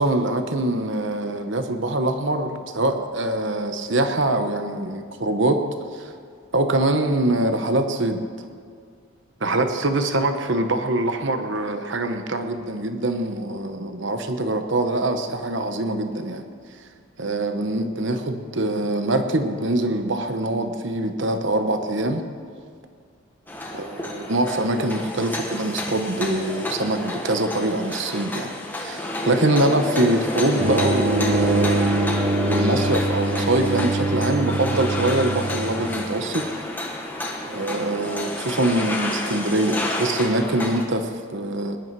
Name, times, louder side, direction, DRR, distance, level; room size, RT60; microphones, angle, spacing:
voice 1, 0.0-5.6 5.9-6.1 6.5-8.3 9.4-16.4 17.2-22.2 23.7-28.5 28.8-36.5 37.5-41.8, right 1 dB, 55° right, 7 dB, 1.0 m, -24 dB
sound 1, 23.5-40.8, left 1 dB, 10° left, 1.3 m, -30 dB
sound 2, 30.6-36.0, right 2 dB, 30° right, 0.8 m, -24 dB
20.5 x 11.0 x 4.7 m, 2.2 s
head